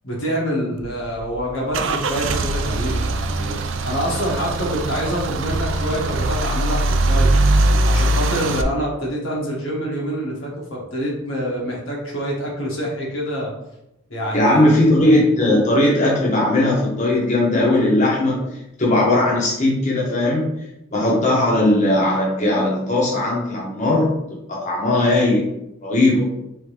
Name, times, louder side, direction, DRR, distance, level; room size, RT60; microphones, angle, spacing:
voice 1, 0.0-3.6 3.8-7.3 7.8-13.5 14.1-14.8, equal, 80° left, -3 dB, 1.4 m, -26 dB
Car / Engine starting / Idling, 0.8-8.6, right 2 dB, 65° right, 0.4 m, -21 dB
voice 2, 14.3-18.4 18.8-20.5 20.9-24.1 24.5-25.5 25.8-26.3, left 1 dB, 35° left, -5 dB, 1.0 m, -18 dB
3.7 x 3.6 x 3.3 m, 0.85 s
head